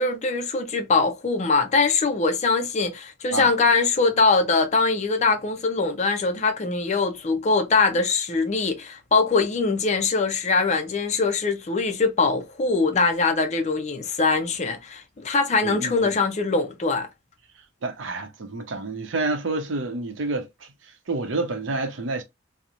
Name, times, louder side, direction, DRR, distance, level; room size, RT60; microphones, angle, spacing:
voice 1, 0.0-17.1, left 4 dB, 35° left, 0.5 m, -22 dB
voice 2, 15.6-16.1 17.8-20.7 21.1-22.2, right 3 dB, 85° right, 0.6 m, -28 dB
2.9 x 2.0 x 2.4 m
head